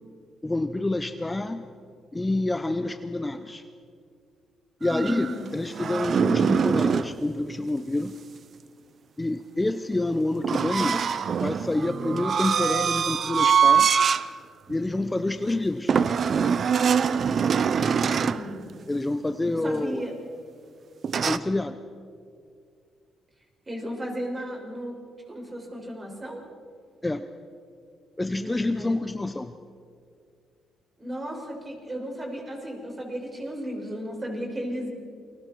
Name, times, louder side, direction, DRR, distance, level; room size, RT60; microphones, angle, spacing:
voice 1, 0.4-1.7 2.1-3.7 4.8-8.2 9.2-11.0 11.4-13.9 14.7-16.0 18.9-20.1 21.1-21.8 27.0-27.3 28.2-29.6, left 2 dB, 15° left, 10 dB, 0.7 m, -28 dB
sound 1, 4.8-7.1 10.4-14.3 14.7-14.9 15.9-18.5 21.0-21.4, right 7 dB, 50° right, 0.7 m, -23 dB
voice 2, 4.9-5.5 18.2-18.7 19.4-20.1 23.7-25.0 25.3-26.4 28.3-29.0 31.0-34.9, equal, 25° right, 0 dB, 6.1 m, -34 dB
29.0 x 22.0 x 4.6 m, 2.3 s
cardioid pair, 90°, 0 cm